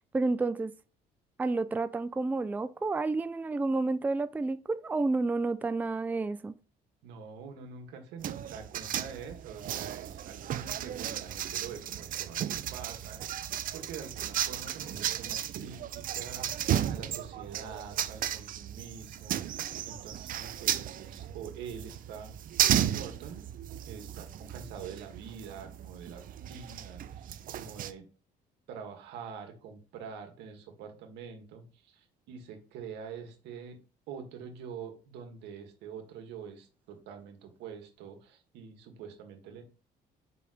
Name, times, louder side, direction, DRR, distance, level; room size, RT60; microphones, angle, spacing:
voice 1, 0.1-0.7 1.4-6.5, right 3 dB, 10° right, 0.4 m, -30 dB
voice 2, 7.0-13.2 13.7-22.3 22.6-23.4 23.9-28.1 28.7-33.8 34.1-39.6, right 6 dB, 85° right, 1.7 m, -45 dB
sound 1, 8.2-27.9, right 11 dB, 55° right, 0.6 m, -34 dB
5.2 x 4.3 x 4.9 m
cardioid pair, 110°, 17 cm